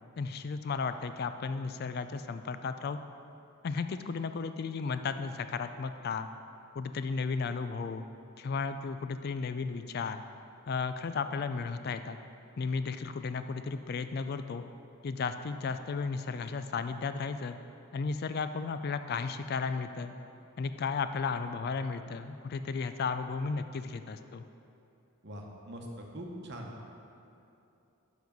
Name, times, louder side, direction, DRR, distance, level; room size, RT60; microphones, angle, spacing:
voice 1, 0.2-3.0 3.6-6.3 6.8-8.0 8.4-10.2 10.7-12.2 12.6-14.6 15.0-17.6 17.9-20.1 20.6-24.4, left 5 dB, 45° left, 10 dB, 0.3 m, -34 dB
voice 2, 25.2-26.7, equal, 50° right, 1 dB, 1.0 m, -42 dB
7.1 x 6.2 x 5.3 m, 2.7 s
head